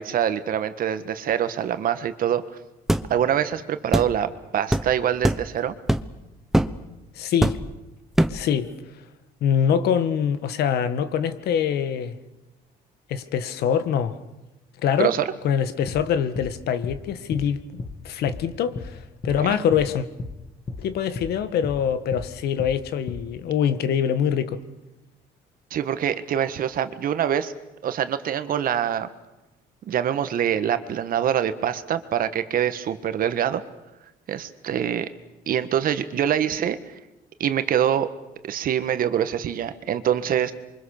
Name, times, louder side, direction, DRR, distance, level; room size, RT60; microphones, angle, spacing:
voice 1, 0.0-2.4 3.1-5.8 15.0-15.3 19.4-19.6 25.7-27.5 27.8-29.1 29.9-33.6 34.3-35.1 35.5-37.0 37.4-38.1 38.4-40.5, right 9 dB, 55° right, 1.7 m, -24 dB
sound 1, 2.9-3.1 3.9-4.1 4.7-4.9 5.2-5.5 5.9-6.1 6.5-6.8 7.4-7.8 8.2-8.5, right 1 dB, ahead, 1.0 m, -21 dB
voice 2, 7.2-7.6 8.3-8.7 9.4-12.2 13.1-14.2 14.8-15.1 15.4-17.6 18.0-20.1 20.8-24.6, left 8 dB, 70° left, 1.8 m, -24 dB
sound 2, 15.9-16.0 16.4-16.5 16.8-17.0 17.3-17.5 17.8-18.0 18.3-18.4 18.7-18.9 19.2-19.4 19.7-19.9 20.2-20.4 20.7-20.8 21.2-21.3 21.6-21.8 22.1-22.3 22.6-22.8 23.1-23.2, left 3 dB, 30° left, 2.2 m, -33 dB
27.5 x 24.0 x 6.7 m
cardioid pair, 110°, 17 cm